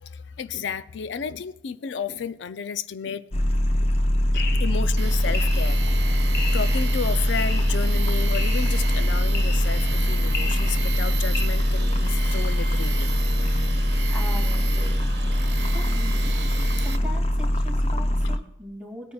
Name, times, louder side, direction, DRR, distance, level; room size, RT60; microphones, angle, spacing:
voice 1, 0.0-3.2 3.8-3.9 4.3-6.1 6.5-13.2 15.6-15.7, left 6 dB, 75° left, 0.4 m, -32 dB
sound 1, 3.3-18.4, equal, 30° left, 0.6 m, -22 dB
sound 2, 4.3-11.4, left 3 dB, 55° left, 1.2 m, -36 dB
Tools, 5.0-17.0, right 6 dB, 65° right, 1.3 m, -36 dB
voice 2, 14.1-15.0 15.6-16.3 16.8-19.1, left 1 dB, 5° right, 2.4 m, -40 dB
18.0 x 9.3 x 2.3 m
head